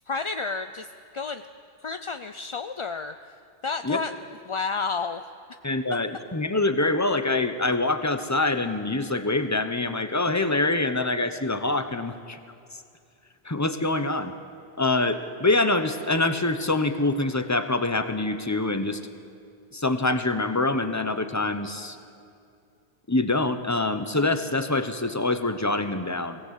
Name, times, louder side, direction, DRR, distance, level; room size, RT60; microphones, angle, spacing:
voice 1, 0.1-0.9 1.1-1.4 1.8-3.3 3.6-4.1 4.5-5.2, left 4 dB, 40° left, 8 dB, 0.4 m, -30 dB
voice 2, 5.6-12.4 13.4-14.3 14.8-19.0 19.7-22.0 23.1-26.4, left 2 dB, 15° left, 9 dB, 0.9 m, -25 dB
22.5 x 17.5 x 8.3 m, 2.4 s
omnidirectional pair, 1.1 m